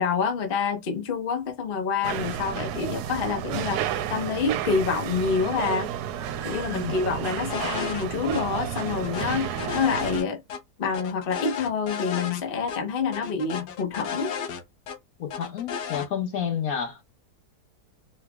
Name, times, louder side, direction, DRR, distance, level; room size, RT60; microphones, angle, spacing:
voice 1, 0.0-5.9 6.4-10.4 10.8-14.3, left 5 dB, 40° left, 1.0 m, -27 dB
sound 1, 2.0-10.2, right 9 dB, 75° right, 1.1 m, -31 dB
sound 2, 7.5-8.0 8.3-8.4 8.8-10.6 10.9-12.4 12.7-12.8 13.1-15.0 15.3-16.1, left 7 dB, 80° left, 1.4 m, -33 dB
voice 2, 15.2-17.0, left 8 dB, 65° left, 1.2 m, -30 dB
4.6 x 3.2 x 2.3 m
omnidirectional pair, 1.8 m